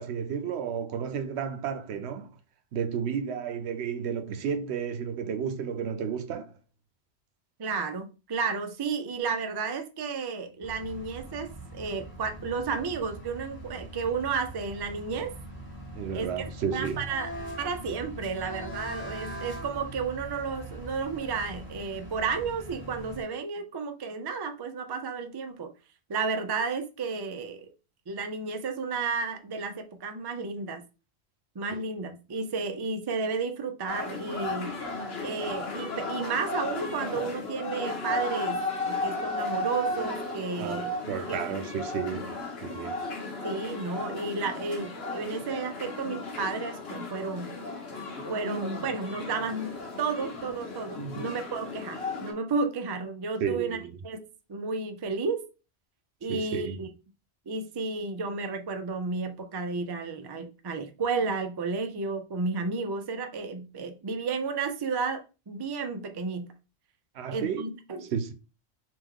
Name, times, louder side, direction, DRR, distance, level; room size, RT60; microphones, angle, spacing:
voice 1, 0.0-2.3 2.7-6.5 15.9-17.0 31.7-31.8 40.6-43.1 51.0-51.3 53.4-54.0 56.3-56.8 67.1-67.6 68.1-68.3, right 7 dB, 80° right, 0.9 m, -32 dB
voice 2, 7.6-15.3 16.1-16.4 16.7-17.3 17.6-25.7 26.1-27.7 28.1-30.8 31.6-34.7 35.2-41.0 41.3-41.4 43.4-47.6 48.3-53.8 54.0-54.2 54.5-55.4 56.2-56.9 57.5-66.5 67.3-68.3, right 4 dB, 35° right, 0.4 m, -32 dB
sound 1, 10.6-23.2, right 1 dB, 10° left, 1.1 m, -42 dB
sound 2, 33.9-52.3, left 2 dB, 70° left, 1.3 m, -35 dB
3.4 x 3.0 x 3.6 m
omnidirectional pair, 1.1 m